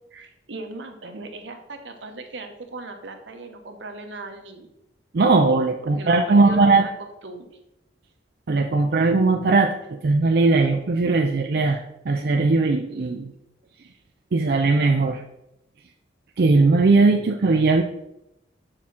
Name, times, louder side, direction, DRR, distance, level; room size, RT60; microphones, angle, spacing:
voice 1, 0.1-4.7 5.8-6.9 7.2-7.5, right 3 dB, 85° right, 5 dB, 1.0 m, -38 dB
voice 2, 5.1-6.9 8.5-9.8 10.0-13.3 14.3-15.2 16.4-17.8, right 3 dB, 60° right, 3 dB, 0.4 m, -19 dB
6.5 x 3.7 x 5.7 m, 0.85 s
head